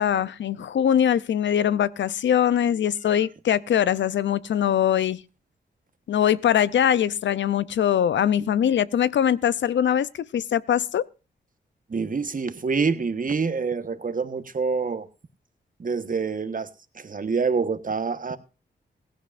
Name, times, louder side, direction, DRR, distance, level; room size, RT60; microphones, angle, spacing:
voice 1, 0.0-5.2 6.1-11.1, left 9 dB, 80° left, 0.6 m, -22 dB
voice 2, 11.9-15.1 15.8-16.7 16.9-18.4, right 5 dB, 45° right, 1.3 m, -26 dB
17.0 x 15.5 x 2.6 m
cardioid pair, 55°, 19 cm